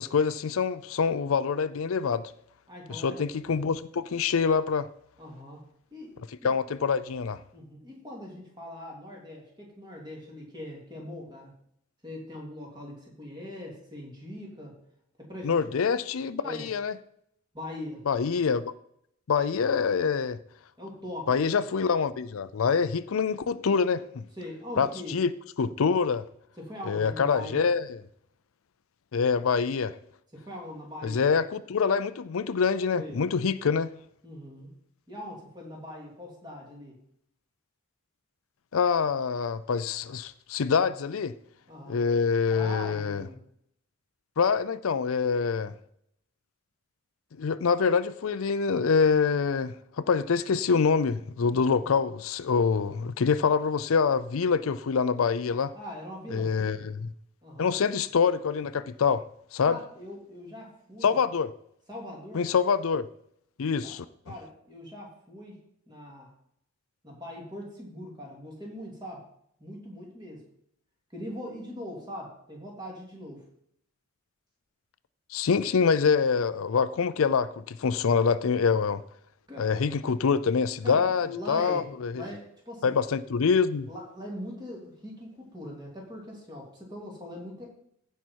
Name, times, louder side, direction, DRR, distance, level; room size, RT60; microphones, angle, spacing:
voice 1, 0.0-2.3 2.9-4.9 6.4-7.4 15.4-16.9 18.1-18.7 19.3-20.4 21.3-24.2 24.8-25.3 25.6-26.2 26.9-28.0 29.1-30.0 31.0-33.9 38.7-41.4 41.9-43.2 44.4-45.7 47.4-55.7 56.3-57.1 57.6-59.2 59.5-59.8 61.0-61.5 62.3-63.1 63.6-64.0 75.3-79.0 79.6-82.2 82.8-83.9, left 5 dB, 75° left, 0.5 m, -25 dB
voice 2, 2.7-3.2 5.2-5.6 5.9-6.1 7.5-11.6 12.0-14.8 15.2-15.6 16.4-16.7 17.5-18.0 20.8-21.6 24.3-25.2 26.6-27.7 30.3-31.4 32.9-33.2 34.2-34.7 35.1-37.0 41.7-42.0 42.5-43.4 51.5-51.9 55.7-56.9 57.4-57.7 59.7-61.2 61.9-62.5 63.8-64.0 64.2-65.6 65.9-66.3 67.0-69.3 69.6-70.4 71.1-73.5 79.5-79.7 80.8-81.9 82.1-83.0 83.9-87.8, left 1 dB, 20° right, 3.0 m, -41 dB
15.5 x 5.6 x 4.6 m
head